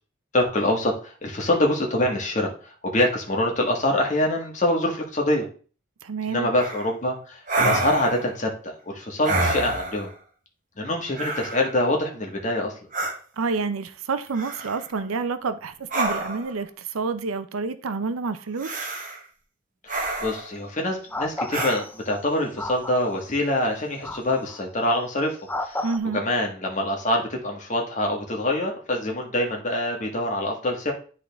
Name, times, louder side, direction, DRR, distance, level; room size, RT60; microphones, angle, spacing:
voice 1, 0.3-5.5 6.3-10.1 10.8-12.7 19.8-25.8 26.1-30.9, left 1 dB, 35° left, 1.4 m, -25 dB
voice 2, 6.0-6.5 13.4-18.7 25.8-26.2, right 4 dB, 85° right, 0.6 m, -28 dB
sound 1, 6.6-6.9 7.5-8.3 9.2-10.1 11.1-11.8 12.9-13.1 14.3-14.9 15.9-16.5 18.6-19.2 19.9-20.5 21.5-21.8, right 2 dB, 40° right, 1.1 m, -27 dB
sound 2, 20.2-20.4 21.1-22.1 22.6-23.2 24.0-24.6 25.5-26.0, left 2 dB, 10° left, 0.4 m, -32 dB
10.5 x 3.8 x 3.4 m
head